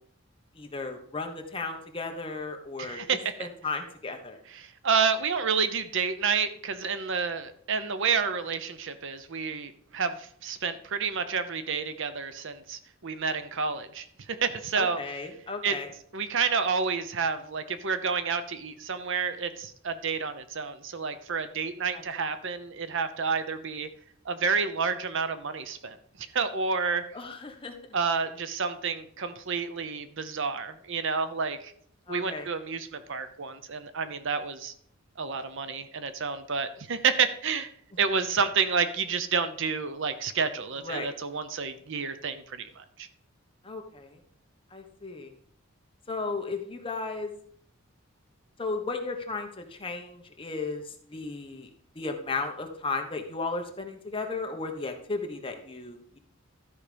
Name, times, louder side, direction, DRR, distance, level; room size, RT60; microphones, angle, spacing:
voice 1, 0.5-3.0 3.4-4.4 14.7-15.9 21.9-22.2 27.1-27.8 32.1-32.5 40.8-41.1 43.6-44.2 44.7-45.3 46.1-47.3 48.6-51.7 51.9-56.2, left 3 dB, 25° left, 4 dB, 1.3 m, -35 dB
voice 2, 2.8-3.5 4.5-15.0 15.6-15.8 16.1-23.9 24.2-27.0 27.9-31.7 32.1-34.7 35.2-37.7 38.0-43.1, right 5 dB, 65° right, 11 dB, 0.8 m, -29 dB
12.5 x 4.9 x 5.1 m, 0.62 s
head